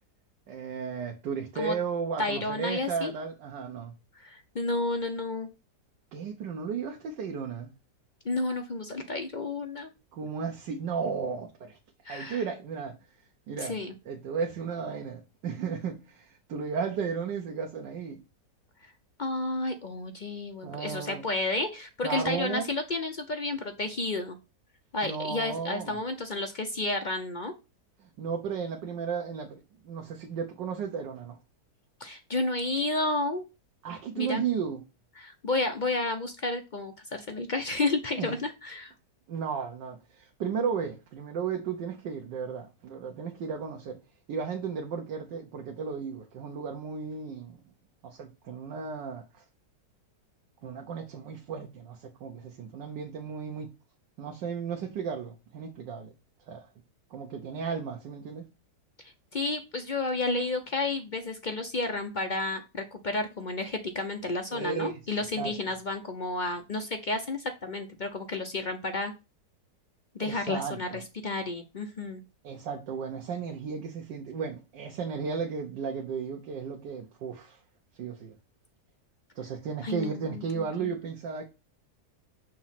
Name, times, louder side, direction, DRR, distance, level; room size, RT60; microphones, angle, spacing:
voice 1, 0.5-3.9 6.1-7.7 10.1-11.8 12.1-13.0 13.5-13.8 14.0-18.2 20.6-21.2 22.0-22.7 25.0-26.0 28.0-31.4 33.8-34.8 38.2-38.3 39.3-44.0 44.3-47.6 48.0-49.4 50.6-53.7 54.2-56.1 56.5-56.7 57.1-58.4 64.5-65.0 65.4-65.5 70.2-71.0 72.4-77.6 78.0-78.4 79.4-81.4, right 6 dB, 85° right, 1.6 m, -34 dB
voice 2, 2.2-3.1 4.1-5.5 8.2-9.9 12.0-12.4 13.6-13.9 18.8-18.9 19.2-24.4 24.9-27.5 32.0-33.4 34.2-34.4 35.2-38.9 59.3-69.1 70.1-72.2 79.8-80.9, left 2 dB, 60° left, 0.4 m, -31 dB
6.3 x 3.0 x 5.6 m
omnidirectional pair, 1.9 m